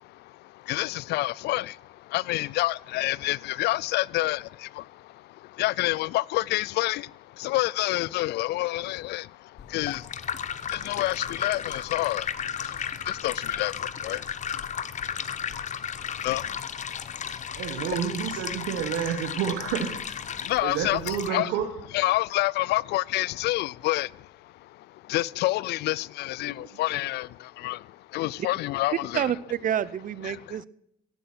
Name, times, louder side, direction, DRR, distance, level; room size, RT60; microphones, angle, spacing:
voice 1, 0.0-18.0 20.3-21.5 21.9-29.3 30.2-30.7, left 18 dB, 70° left, 0.4 m, -29 dB
sound 1, 9.6-21.3, left 8 dB, 45° left, 0.9 m, -34 dB
voice 2, 17.6-20.2 20.6-21.7, right 8 dB, 90° right, 1.5 m, -29 dB
voice 3, 29.1-30.7, right 10 dB, 50° right, 0.7 m, -28 dB
16.0 x 7.7 x 5.9 m
cardioid pair, 85°, 18 cm